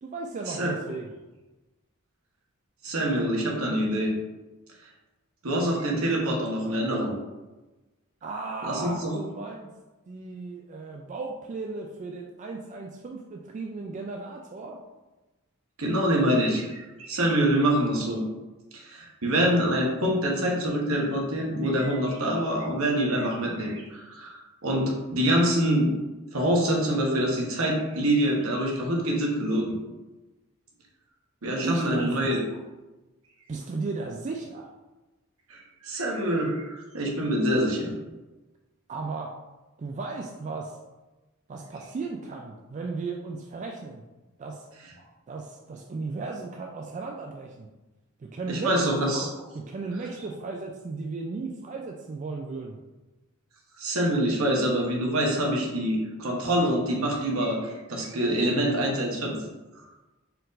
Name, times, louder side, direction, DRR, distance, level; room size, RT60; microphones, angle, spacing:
voice 1, 0.0-1.1 8.2-9.7 10.1-14.8 31.6-32.4 33.5-34.7 38.9-39.3 39.8-40.8 41.5-44.0 44.4-44.7 45.3-47.7 48.2-48.9 49.5-52.8, right 3 dB, 35° right, 1 dB, 0.3 m, -35 dB
voice 2, 2.8-4.1 5.4-7.1 8.7-9.2 15.8-18.2 18.7-25.9 26.3-29.7 31.4-32.4 35.5-37.9 48.5-49.3 53.8-59.4, right 1 dB, 75° right, -1 dB, 1.0 m, -25 dB
4.4 x 2.5 x 3.9 m, 1.1 s
head